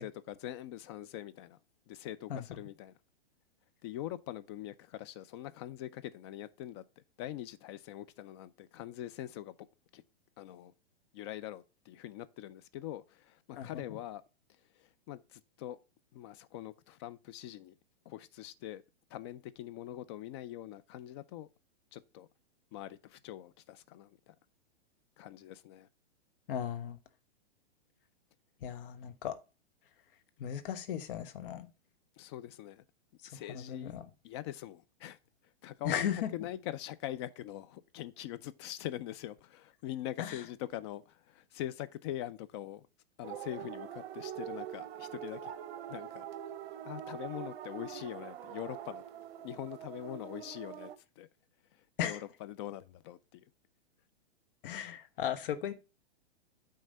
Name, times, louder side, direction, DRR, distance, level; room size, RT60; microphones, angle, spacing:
voice 1, 0.0-1.6 1.9-2.9 3.8-9.5 9.9-10.0 10.4-10.7 11.1-14.2 14.8-15.8 16.1-17.8 18.1-18.8 19.1-21.5 21.9-22.3 22.7-24.3 25.2-25.9 32.2-32.8 33.3-33.9 34.2-35.2 35.6-42.9 43.2-45.5 45.9-46.3 46.8-49.0 49.4-51.3 52.0-53.4, left 13 dB, 25° left, 0.3 m, -43 dB
voice 2, 26.5-27.0 28.6-29.3 30.4-31.7 33.5-34.1 35.8-36.3 40.2-40.4 52.0-52.2 54.6-55.7, left 9 dB, 55° left, 1.2 m, -36 dB
sound 1, 43.2-51.0, right 10 dB, 65° right, 0.9 m, -44 dB
9.1 x 3.3 x 6.5 m
hypercardioid pair, 135°, 32 cm